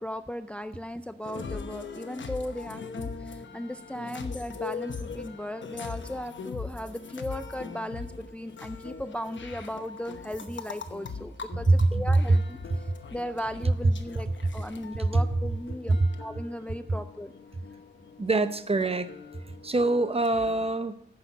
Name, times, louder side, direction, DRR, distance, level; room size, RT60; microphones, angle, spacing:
voice 1, 0.0-17.3, left 1 dB, 5° left, 11 dB, 0.4 m, -37 dB
sound 1, 1.2-20.7, left 5 dB, 85° left, 0.9 m, -41 dB
voice 2, 11.7-12.0 15.0-15.1 18.2-19.1 19.6-21.0, right 2 dB, 30° right, 11 dB, 0.7 m, -24 dB
9.8 x 6.5 x 7.1 m, 0.74 s
wide cardioid pair, 105°, 19 cm